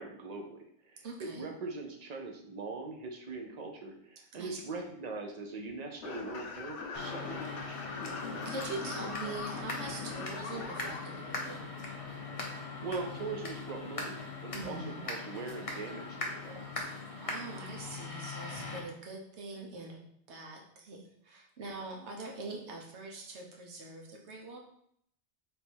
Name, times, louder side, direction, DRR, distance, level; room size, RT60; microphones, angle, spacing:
voice 1, 0.0-7.3 12.8-14.8 15.0-16.6, right 3 dB, 45° right, 2 dB, 0.6 m, -41 dB
voice 2, 1.0-1.5 4.3-4.8 8.4-11.7 14.5-15.0 17.2-24.6, right 3 dB, 90° right, 0 dB, 1.2 m, -43 dB
sound 1, 6.0-11.0, left 4 dB, 90° left, 1.0 m, -41 dB
sound 2, 7.0-18.8, left 3 dB, 35° left, 0.7 m, -41 dB
3.5 x 2.7 x 4.4 m, 0.70 s
omnidirectional pair, 1.1 m